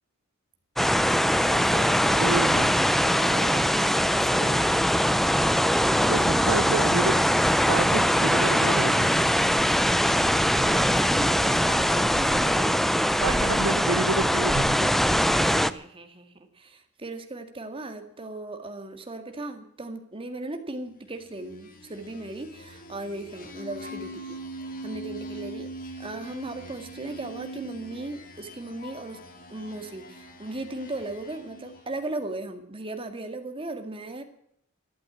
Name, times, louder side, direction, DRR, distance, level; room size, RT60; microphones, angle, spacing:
sound 1, 0.8-15.7, equal, ahead, 0.5 m, -22 dB
voice 1, 1.5-2.5 3.0-5.0 5.8-6.3 10.3-12.7 13.3-13.4 15.3-24.4 24.8-29.2 29.5-34.2, right 2 dB, 25° right, 6 dB, 1.9 m, -37 dB
voice 2, 2.2-2.7 6.1-7.1 7.7-9.1 13.2-14.9, right 4 dB, 80° right, 14 dB, 0.6 m, -29 dB
sound 2, 21.1-32.0, right 1 dB, 45° left, 2.3 m, -42 dB
12.5 x 12.0 x 7.3 m, 0.70 s
head